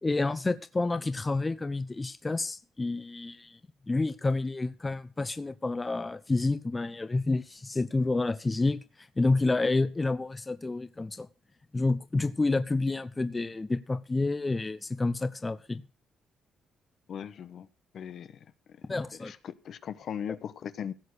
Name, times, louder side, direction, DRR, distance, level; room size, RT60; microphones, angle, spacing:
voice 1, 0.0-3.6 3.9-8.8 9.2-11.3 11.7-15.8 18.9-19.3, left 3 dB, 20° left, 0.8 m, -29 dB
voice 2, 17.1-17.7 17.9-18.5 18.8-18.9 19.2-20.9, left 8 dB, 65° left, 1.0 m, -38 dB
16.0 x 6.6 x 6.5 m
cardioid pair, 100°, 0 cm